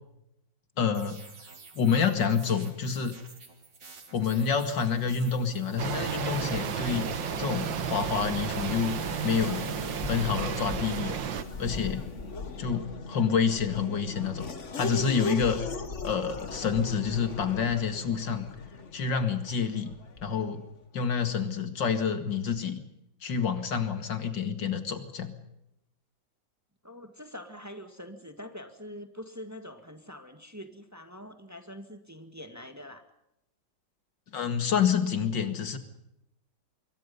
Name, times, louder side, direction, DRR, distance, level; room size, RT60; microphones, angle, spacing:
voice 1, 0.8-1.2 1.8-3.2 4.1-7.1 7.4-9.0 9.2-9.7 10.1-11.2 11.6-12.1 12.6-14.4 14.7-15.6 16.0-18.5 18.9-20.0 20.2-20.6 20.9-22.8 23.2-25.3 34.3-35.8, left 6 dB, 75° left, 8 dB, 2.7 m, -28 dB
sound 1, 0.9-12.3, right 4 dB, 65° right, 3.9 m, -50 dB
Race car auto racing / Accelerating revving vroom, 5.0-20.5, left 4 dB, 40° left, 1.8 m, -39 dB
sound 2, 5.8-11.4, right 8 dB, 85° right, 2.0 m, -33 dB
voice 2, 26.8-33.0, left 1 dB, 10° right, 7 dB, 1.9 m, -44 dB
26.0 x 23.0 x 5.5 m, 0.84 s
omnidirectional pair, 2.0 m